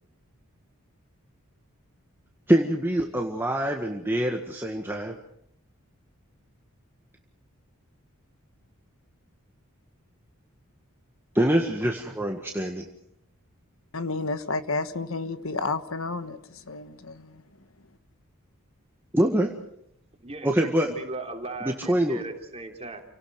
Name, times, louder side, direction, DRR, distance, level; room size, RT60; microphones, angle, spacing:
voice 1, 2.5-5.1 11.3-12.8 19.1-19.5 20.4-20.9 21.6-22.2, right 1 dB, 10° right, 1 dB, 1.8 m, -24 dB
voice 2, 13.9-17.4, left 3 dB, 65° left, 10 dB, 1.4 m, -31 dB
voice 3, 20.2-23.0, right 2 dB, 30° right, 2 dB, 3.6 m, -37 dB
30.0 x 18.0 x 6.5 m, 0.76 s
head